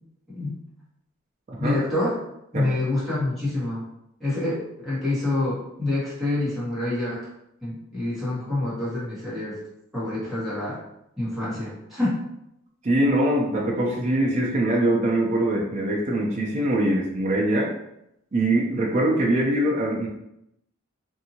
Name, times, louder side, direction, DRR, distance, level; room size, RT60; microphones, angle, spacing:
voice 1, 1.6-2.1 2.5-3.8 4.2-7.2 7.6-9.6 9.9-10.8 11.2-12.1, left 2 dB, ahead, -11 dB, 1.2 m, -27 dB
voice 2, 12.8-17.7 18.3-20.1, right 1 dB, 35° right, -3 dB, 0.5 m, -23 dB
2.6 x 2.6 x 2.8 m, 0.81 s
head